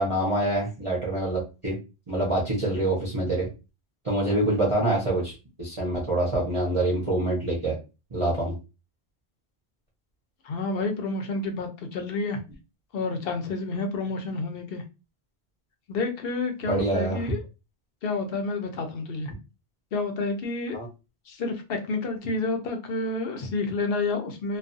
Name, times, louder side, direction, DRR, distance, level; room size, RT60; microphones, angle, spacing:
voice 1, 0.0-1.7 2.1-3.5 4.0-5.3 5.6-7.8 8.1-8.5 16.7-17.2 20.7-20.9, right 1 dB, 35° right, -4 dB, 0.7 m, -25 dB
voice 2, 10.4-12.4 12.9-14.8 15.9-17.4 18.0-19.3 19.9-20.8 21.3-24.6, left 3 dB, 70° left, 5 dB, 0.8 m, -29 dB
2.3 x 2.3 x 2.5 m, 0.28 s
omnidirectional pair, 1.1 m